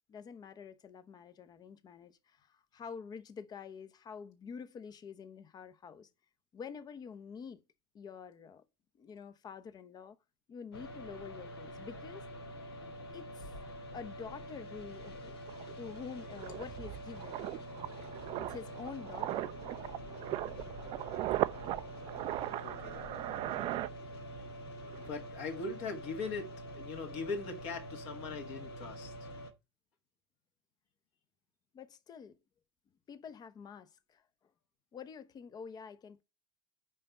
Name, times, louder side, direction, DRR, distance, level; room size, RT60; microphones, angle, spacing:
voice 1, 0.1-6.1 6.5-7.6 7.9-8.6 9.0-10.2 10.5-12.3 13.1-13.5 13.9-15.4 15.8-17.4 18.4-19.5 31.7-32.3 33.1-34.2 34.9-36.2, left 6 dB, 30° left, 0.9 m, -47 dB
sound 1, 10.7-29.5, equal, 70° left, 1.3 m, -46 dB
sound 2, 15.1-15.2 15.5-24.5 24.8-25.1, right 16 dB, 40° right, 0.4 m, -38 dB
voice 2, 22.6-23.1 24.3-24.5 24.9-29.1, left 4 dB, 50° left, 2.0 m, -41 dB
5.5 x 5.3 x 6.7 m
figure-of-eight pair, 75°, 13 cm